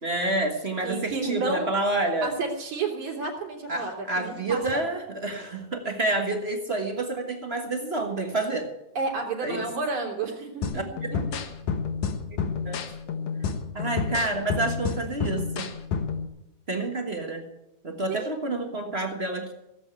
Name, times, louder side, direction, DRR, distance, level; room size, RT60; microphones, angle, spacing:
voice 1, 0.0-2.3 3.7-8.7 9.4-9.6 10.7-11.1 12.3-12.8 13.4-15.7 16.7-17.4 17.8-19.5, right 2 dB, 40° right, 3 dB, 0.9 m, -29 dB
voice 2, 0.8-1.7 2.2-4.8 9.0-10.6 18.1-18.3, right 4 dB, 70° right, -1 dB, 4.3 m, -31 dB
sound 1, 10.6-16.3, left 6 dB, 70° left, 2.6 m, -30 dB
17.0 x 8.0 x 8.1 m, 0.90 s
omnidirectional pair, 3.5 m